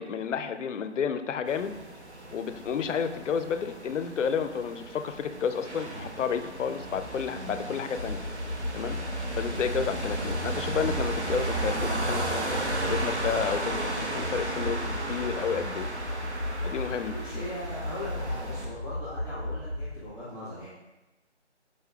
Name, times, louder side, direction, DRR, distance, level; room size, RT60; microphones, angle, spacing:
voice 1, 0.0-1.8 2.3-8.2 8.7-9.0 9.3-15.9 16.6-17.2, left 7 dB, 85° left, 10 dB, 0.5 m, -31 dB
sound 1, 1.5-18.7, right 2 dB, 70° right, 0.9 m, -35 dB
sound 2, 8.0-19.9, left 1 dB, 15° left, 1.2 m, -35 dB
sound 3, 9.6-14.8, right 1 dB, 45° right, 1.1 m, -44 dB
voice 2, 17.1-20.7, left 1 dB, 25° right, -13 dB, 0.9 m, -39 dB
5.2 x 3.5 x 2.3 m, 1.0 s
hypercardioid pair, 180°, 36 cm